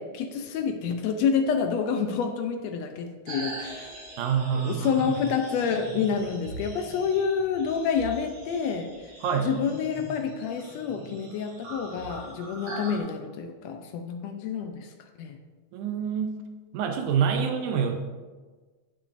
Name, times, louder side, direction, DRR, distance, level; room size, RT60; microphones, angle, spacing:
voice 1, 0.0-3.9 4.5-8.9 9.4-14.9 15.2-15.4, left 6 dB, 75° left, 6 dB, 1.6 m, -28 dB
sound 1, 3.3-13.0, right 1 dB, 60° right, 3.3 m, -41 dB
voice 2, 4.2-5.1 9.2-9.5 15.7-16.4 16.7-18.0, right 7 dB, 85° right, 4 dB, 2.2 m, -26 dB
15.0 x 6.0 x 2.6 m, 1.4 s
omnidirectional pair, 3.5 m